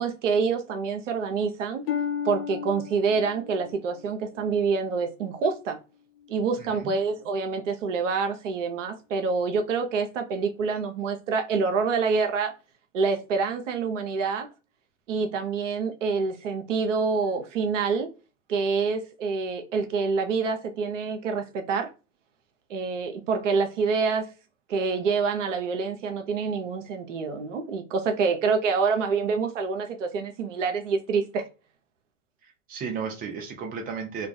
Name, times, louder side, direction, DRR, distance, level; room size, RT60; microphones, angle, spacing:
voice 1, 0.0-1.8 2.2-5.8 6.3-12.5 12.9-14.5 15.1-18.1 18.5-21.9 22.7-24.3 24.7-31.4, right 5 dB, 70° right, 0.6 m, -27 dB
Harp, 1.9-5.6 6.2-6.6 7.2-7.3, left 8 dB, 50° left, 0.5 m, -35 dB
voice 2, 6.6-6.9 32.7-34.3, right 6 dB, 20° right, 0.6 m, -34 dB
2.2 x 2.2 x 2.5 m
hypercardioid pair, 95°, 38 cm